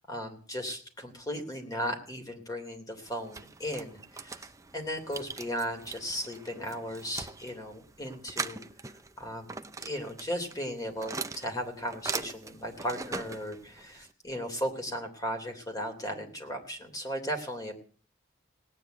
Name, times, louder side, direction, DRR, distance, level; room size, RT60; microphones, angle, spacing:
voice 1, 0.1-4.5 4.7-8.6 9.2-17.7, equal, 20° left, 4 dB, 3.2 m, -36 dB
sound 1, 3.0-14.1, right 4 dB, 15° right, 0.7 m, -41 dB
18.5 x 9.7 x 8.1 m, 0.43 s
head